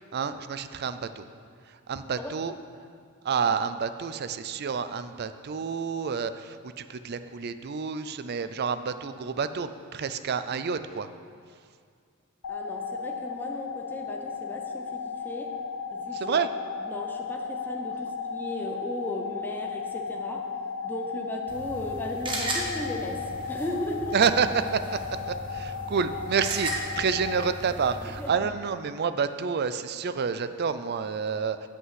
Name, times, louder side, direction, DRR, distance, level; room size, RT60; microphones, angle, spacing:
voice 1, 0.1-1.2 1.9-2.5 3.2-11.1 16.1-16.5 24.1-25.0 25.3-31.7, right 6 dB, 50° right, 11 dB, 0.4 m, -29 dB
sound 1, 12.4-27.5, left 5 dB, 65° left, 0.5 m, -35 dB
voice 2, 12.5-15.6 15.9-16.4 16.8-20.5 20.8-24.2 28.2-28.5, left 1 dB, 10° left, 1 dB, 0.7 m, -36 dB
sound 2, 21.5-28.3, right 1 dB, 25° right, 1.3 m, -36 dB
8.4 x 5.7 x 7.6 m, 2.1 s
head